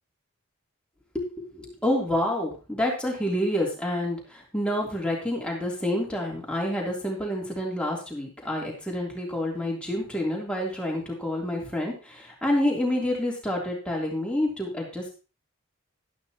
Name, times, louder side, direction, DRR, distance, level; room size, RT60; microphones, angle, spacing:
voice 1, 1.1-15.1, left 1 dB, 5° left, -2 dB, 3.2 m, -28 dB
12.0 x 11.5 x 3.0 m, 0.33 s
head